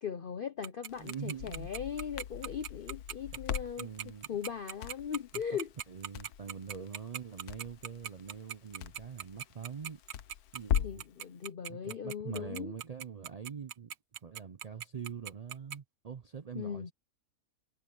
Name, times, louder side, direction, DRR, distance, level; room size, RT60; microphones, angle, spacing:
voice 1, 0.0-3.9 4.3-5.7 10.8-12.8 16.5-16.9, left 7 dB, 50° left, 0.7 m, -39 dB
Tick-tock, 0.6-15.8, right 9 dB, 55° right, 0.9 m, -40 dB
Crackle, 0.9-11.1, left 10 dB, 85° left, 1.3 m, -40 dB
voice 2, 1.0-1.7 3.8-4.3 5.9-10.0 10.5-11.0 11.7-13.9 14.2-16.9, right 7 dB, 80° right, 0.3 m, -44 dB
omnidirectional pair, 1.6 m